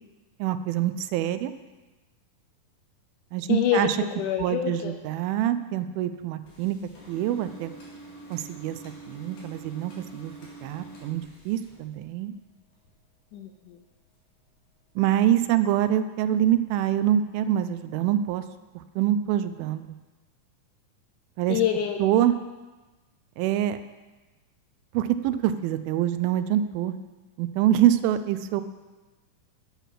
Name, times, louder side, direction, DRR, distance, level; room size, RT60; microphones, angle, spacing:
voice 1, 0.4-1.5 3.3-4.0 4.4-6.8 7.1-7.7 8.3-8.8 9.1-10.3 10.6-12.3 15.0-18.4 19.0-19.8 21.4-21.6 22.0-22.3 23.4-23.8 24.9-27.0 27.4-28.6, right 11 dB, 90° right, 11 dB, 2.4 m, -25 dB
voice 2, 3.5-4.9 13.3-13.8 21.5-22.0, left 9 dB, 80° left, 4 dB, 1.9 m, -26 dB
sound 1, 6.4-12.4 12.7-13.5 13.9-14.2 14.7-14.8 15.0-15.1, right 2 dB, 65° left, 3.5 m, -46 dB
9.0 x 7.1 x 5.8 m, 1.2 s
omnidirectional pair, 4.2 m